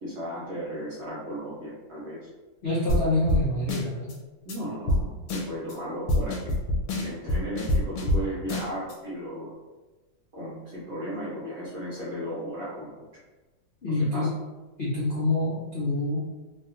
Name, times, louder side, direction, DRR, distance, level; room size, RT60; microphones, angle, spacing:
voice 1, 0.0-2.3 4.4-6.4 7.0-9.5 10.3-12.9 14.1-14.3, equal, 60° right, -7 dB, 0.9 m, -35 dB
voice 2, 2.6-4.1 13.8-14.3 14.8-16.2, left 2 dB, 55° left, -11 dB, 0.7 m, -26 dB
sound 1, 2.9-3.0 3.3-3.4 3.7-4.1 4.5-4.6 4.9-5.0 5.3-5.7 6.1-8.2 8.5-8.9, left 1 dB, 85° left, 1.4 m, -25 dB
3.2 x 2.3 x 2.8 m, 1.2 s
omnidirectional pair, 2.0 m